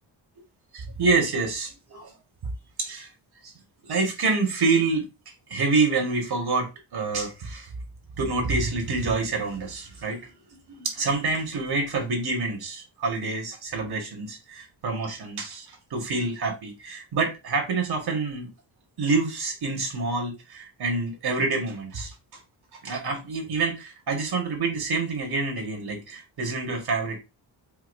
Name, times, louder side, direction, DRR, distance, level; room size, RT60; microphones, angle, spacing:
voice 1, 0.7-2.1 2.8-3.1 3.4-3.5 3.8-5.1 5.5-7.7 8.2-10.3 10.8-18.5 19.0-22.1 22.8-27.2, right 3 dB, 60° right, 1.5 m, -27 dB
4.8 x 2.7 x 2.5 m
wide cardioid pair, 155°, 44 cm